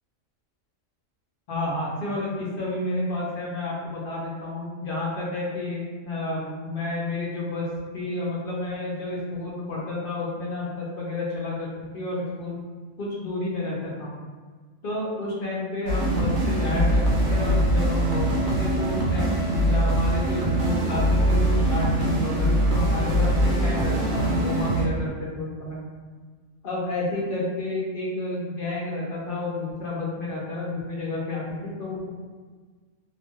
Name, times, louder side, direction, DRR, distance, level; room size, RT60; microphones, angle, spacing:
voice 1, 1.5-7.7 7.9-11.7 11.9-12.6 13.0-14.1 14.8-19.4 19.7-25.8 26.6-32.1, left 2 dB, 55° left, -5 dB, 0.6 m, -30 dB
sound 1, 15.9-24.8, right 1 dB, 70° right, 0.8 m, -22 dB
2.4 x 2.1 x 3.0 m, 1.5 s
omnidirectional pair, 1.4 m